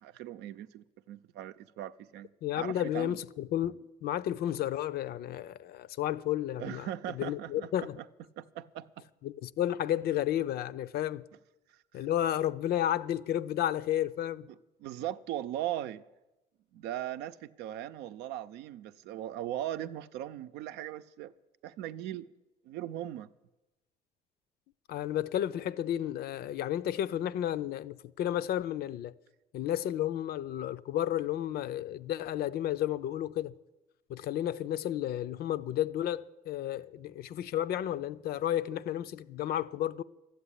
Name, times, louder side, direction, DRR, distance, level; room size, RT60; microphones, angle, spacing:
voice 1, 0.0-2.3 2.5-3.2 6.6-8.1 8.4-9.0 11.7-12.0 14.5-16.0 16.7-21.3 21.6-22.3 22.6-23.3, right 12 dB, 90° right, 0.6 m, -39 dB
voice 2, 2.4-6.9 7.1-8.0 9.2-11.2 11.9-14.5 24.9-29.1 29.5-33.5 34.1-40.0, left 11 dB, 65° left, 0.6 m, -32 dB
13.0 x 8.1 x 9.9 m
cardioid pair, 110°, 17 cm